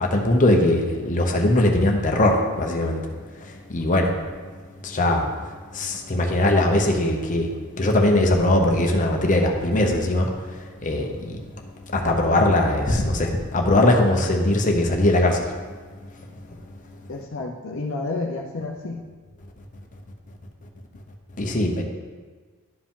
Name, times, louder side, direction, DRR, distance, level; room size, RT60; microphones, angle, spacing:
voice 1, 0.0-3.0 3.7-4.1 4.8-5.3 5.7-7.5 7.8-10.3 10.8-11.3 11.9-13.3 13.5-15.5 21.4-21.8, left 1 dB, 35° left, 2 dB, 0.9 m, -20 dB
voice 2, 17.1-19.0, left 3 dB, 60° left, 1 dB, 0.6 m, -30 dB
11.5 x 4.8 x 3.7 m, 1.5 s
head